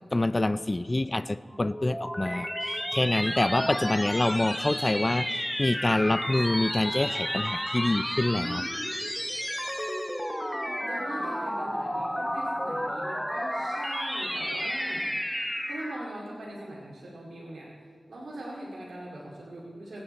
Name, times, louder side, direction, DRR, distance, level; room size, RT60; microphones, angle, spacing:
voice 1, 0.1-8.7, left 2 dB, 30° left, 15 dB, 0.3 m, -26 dB
sound 1, 1.5-16.2, equal, 5° left, 0.9 m, -32 dB
voice 2, 3.3-4.0 10.9-15.1 15.3-17.7 18.1-20.0, right 1 dB, 85° right, -5 dB, 2.2 m, -41 dB
23.5 x 8.9 x 4.3 m, 2.2 s
wide cardioid pair, 70°, 0 cm